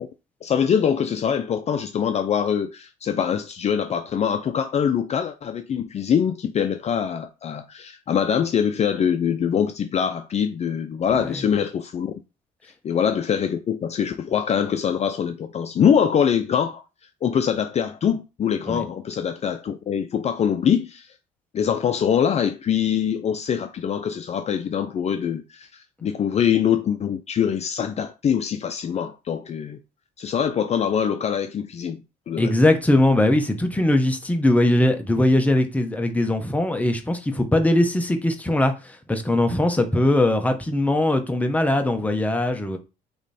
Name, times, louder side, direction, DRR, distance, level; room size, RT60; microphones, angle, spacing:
voice 1, 0.4-12.1 12.8-16.8 17.2-21.1 21.5-29.8 30.2-32.5, left 8 dB, 40° left, 0.6 m, -23 dB
voice 2, 32.4-42.8, left 1 dB, 10° left, 1.1 m, -20 dB
9.0 x 3.1 x 4.3 m
cardioid pair, 110°, 17 cm